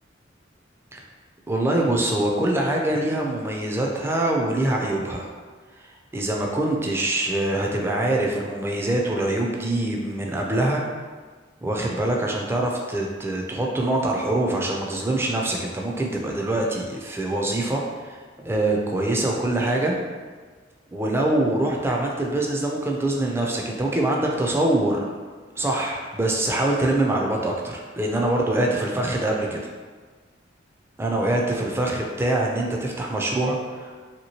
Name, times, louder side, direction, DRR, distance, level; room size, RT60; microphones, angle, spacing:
voice 1, 1.5-5.3 5.8-5.9 6.1-10.8 11.6-20.0 20.9-25.1 25.6-29.6 31.0-33.9, right 1 dB, 15° right, -1 dB, 0.3 m, -24 dB
2.9 x 2.9 x 2.8 m, 1.5 s
head